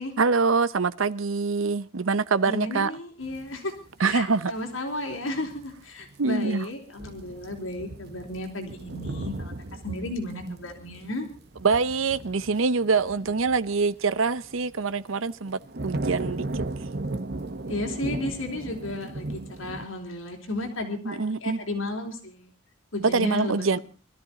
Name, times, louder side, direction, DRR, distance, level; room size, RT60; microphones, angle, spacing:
voice 1, 0.2-2.9 4.0-4.5 6.2-6.7 10.5-10.6 11.6-16.6 21.0-21.6 23.1-23.8, right 4 dB, 80° right, 0.7 m, -25 dB
voice 2, 2.4-9.5 9.8-11.3 17.7-22.5 22.9-23.8, left 2 dB, 80° left, 3.7 m, -33 dB
sound 1, 3.2-4.8 5.1-5.7 6.0-6.2 6.5-6.6 7.0-14.7 15.1-19.8, right 2 dB, 55° right, 1.0 m, -36 dB
23.0 x 13.5 x 4.1 m
head